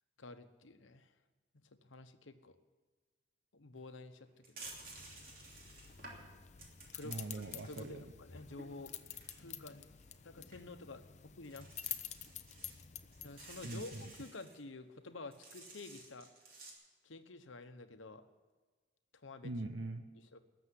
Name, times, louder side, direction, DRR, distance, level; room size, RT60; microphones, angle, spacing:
voice 1, 0.2-1.1 1.5-2.6 3.5-4.6 6.9-7.2 7.7-8.9 9.4-9.9 10.2-11.7 13.2-16.3 17.0-18.3 19.1-19.5 20.1-20.4, left 3 dB, 85° left, 9 dB, 1.0 m, -50 dB
sound 1, 3.8-3.9 4.4-7.9 8.3-10.2 10.5-10.6 11.1-11.2 11.4-12.8 13.1-14.6 15.3-16.7, right 2 dB, 45° right, 3.0 m, -54 dB
sound 2, 4.6-14.3, left 10 dB, 35° left, 0.6 m, -50 dB
voice 2, 7.0-8.0 13.6-14.0 19.4-20.1, right 2 dB, 90° right, 7 dB, 0.9 m, -42 dB
19.5 x 7.2 x 9.8 m, 1.4 s
head